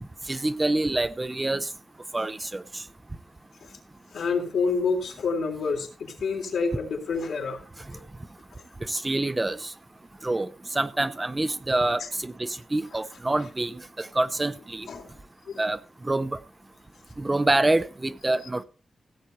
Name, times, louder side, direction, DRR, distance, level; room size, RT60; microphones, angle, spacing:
voice 1, 0.3-1.7 2.1-2.8 8.8-9.7 10.2-14.9 15.6-15.8 16.0-16.4 17.2-18.6, right 2 dB, 15° right, 0.6 m, -26 dB
voice 2, 4.1-7.6 7.9-8.0 12.0-12.1 14.9-15.1 15.5-15.6, left 4 dB, 85° left, 3.5 m, -28 dB
16.5 x 8.0 x 4.3 m
wide cardioid pair, 160°, 0 cm